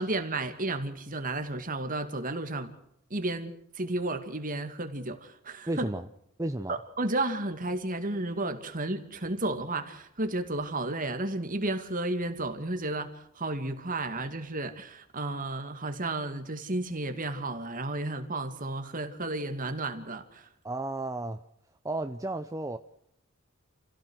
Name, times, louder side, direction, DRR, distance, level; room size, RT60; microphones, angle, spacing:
voice 1, 0.0-2.7 3.1-5.9 6.7-20.5, right 2 dB, 40° right, 2.3 m, -32 dB
voice 2, 5.7-6.1 6.4-6.8 20.6-21.4 21.8-22.8, right 2 dB, 15° right, 0.7 m, -33 dB
29.0 x 16.5 x 6.4 m
head